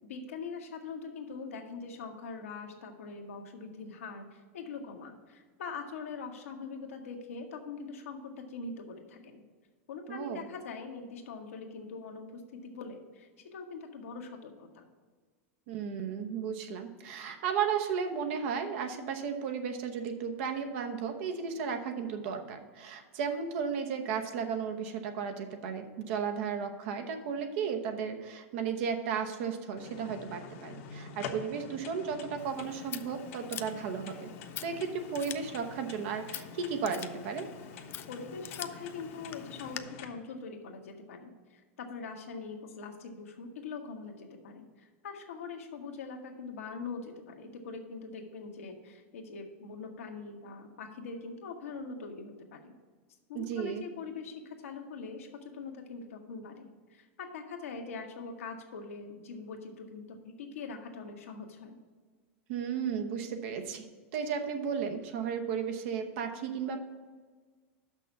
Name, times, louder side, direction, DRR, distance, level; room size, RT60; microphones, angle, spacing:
voice 1, 0.0-9.4 9.9-14.9 38.1-52.7 53.3-61.8, left 4 dB, 90° left, 2 dB, 1.3 m, -43 dB
voice 2, 10.1-10.5 15.7-34.3 34.6-37.5 53.3-53.8 62.5-63.8 64.1-66.8, right 6 dB, 65° right, 6 dB, 1.0 m, -34 dB
sound 1, 29.8-40.1, left 6 dB, 65° left, 1.0 m, -46 dB
Scissors, 32.4-39.8, left 11 dB, 35° left, 0.4 m, -46 dB
6.0 x 5.9 x 7.1 m, 1.5 s
supercardioid pair, 120°, 7 cm